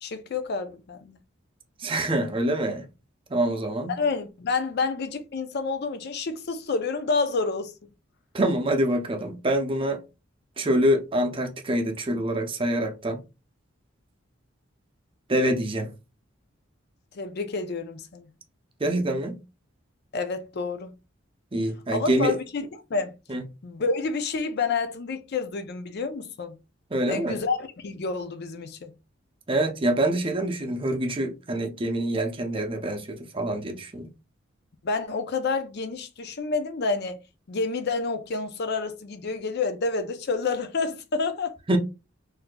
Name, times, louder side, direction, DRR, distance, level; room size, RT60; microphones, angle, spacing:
voice 1, 0.0-1.2 3.9-7.7 17.1-18.3 20.1-20.9 21.9-23.1 23.6-26.6 27.1-28.9 34.8-37.2 37.5-41.6, left 4 dB, 55° left, 0.5 m, -29 dB
voice 2, 1.8-2.8 3.3-4.0 8.3-10.0 10.6-13.2 15.3-15.9 18.8-19.4 21.5-22.4 23.3-23.4 26.9-27.4 29.5-34.1 41.7-41.8, right 1 dB, 25° right, 0.6 m, -25 dB
4.2 x 2.6 x 2.3 m
head